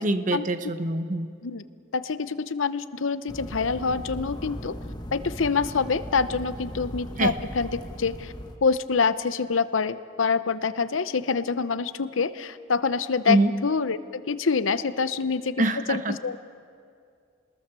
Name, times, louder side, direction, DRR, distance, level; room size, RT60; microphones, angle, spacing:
voice 1, 0.0-1.3 7.2-7.3 13.3-13.5 15.6-16.1, right 2 dB, 40° right, 10 dB, 0.9 m, -24 dB
voice 2, 1.9-4.8 5.1-8.3 8.6-15.6 15.9-16.4, left 5 dB, 90° left, 13 dB, 0.8 m, -26 dB
sound 1, 3.3-8.6, equal, 20° left, 1.4 m, -38 dB
26.0 x 20.5 x 6.8 m, 2.4 s
head